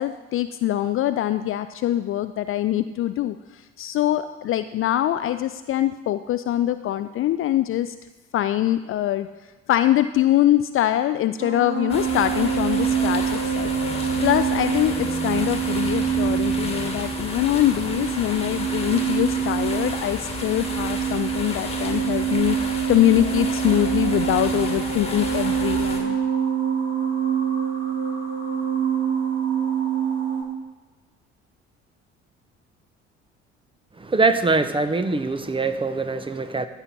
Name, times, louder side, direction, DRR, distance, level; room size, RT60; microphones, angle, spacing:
voice 1, 0.0-7.9 8.3-9.3 9.7-13.7 14.2-26.2, left 13 dB, 40° left, 0.4 m, -23 dB
sound 1, 11.4-30.4, right 8 dB, 35° right, 2.7 m, -25 dB
sound 2, 11.9-26.0, left 3 dB, 15° left, 1.9 m, -32 dB
voice 2, 34.0-36.7, right 3 dB, 15° right, 0.8 m, -23 dB
14.5 x 6.2 x 4.2 m
figure-of-eight pair, 55°, 35 cm